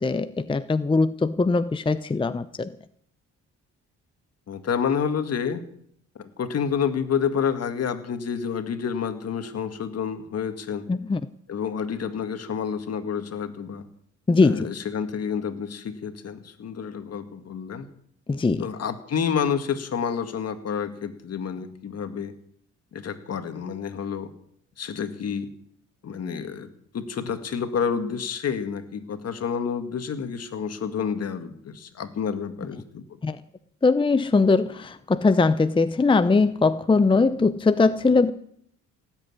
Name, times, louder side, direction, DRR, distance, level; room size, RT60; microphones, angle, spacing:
voice 1, 0.0-2.7 10.9-11.2 14.3-14.7 18.3-18.7 33.2-33.4 33.8-38.3, left 3 dB, 15° left, 12 dB, 0.7 m, -21 dB
voice 2, 4.5-5.6 6.2-10.9 11.5-13.8 14.4-17.9 18.6-22.3 22.9-24.3 24.8-25.5 26.0-26.7 26.9-33.0, left 7 dB, 55° left, 9 dB, 2.0 m, -29 dB
17.5 x 8.1 x 9.7 m, 0.67 s
cardioid pair, 90°, 30 cm